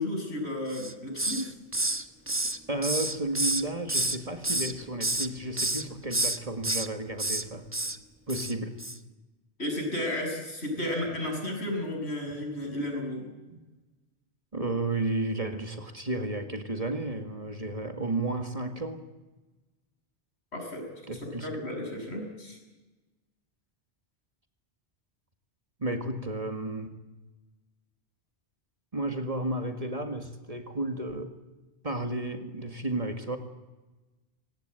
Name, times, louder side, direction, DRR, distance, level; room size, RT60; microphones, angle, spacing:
voice 1, 0.0-1.5 9.6-13.3 20.5-20.8 21.1-22.6, left 1 dB, 70° left, 2 dB, 7.3 m, -33 dB
Hiss, 0.7-1.5 1.7-4.2 4.4-5.3 5.6-5.8 6.1-6.9 7.2-7.4 7.7-8.0 8.3-8.5 8.8-9.0, right 1 dB, 10° right, 1.0 m, -29 dB
voice 2, 2.7-7.6 8.3-8.8 12.3-12.4 13.5-13.6 14.5-19.0 21.1-21.5 21.9-22.0 25.8-26.9 28.9-31.3 31.8-33.4, right 2 dB, 35° right, 6 dB, 2.0 m, -32 dB
24.0 x 19.5 x 9.0 m, 1.2 s
omnidirectional pair, 1.1 m